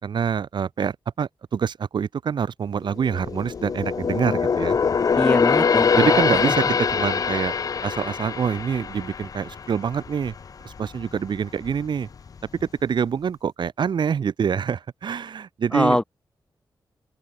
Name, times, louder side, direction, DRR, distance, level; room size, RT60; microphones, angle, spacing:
voice 1, 0.0-4.8 6.0-7.5 7.8-10.3 10.6-12.1 12.6-16.0, right 7 dB, 75° right, 3.2 m, -26 dB
sound 1, 2.9-10.4 10.8-11.0 11.6-12.3 12.6-12.7, left 6 dB, 50° left, 0.9 m, -23 dB
voice 2, 5.1-6.5 15.7-16.0, left 1 dB, 10° left, 0.7 m, -23 dB
open air
wide cardioid pair, 175°, 8 cm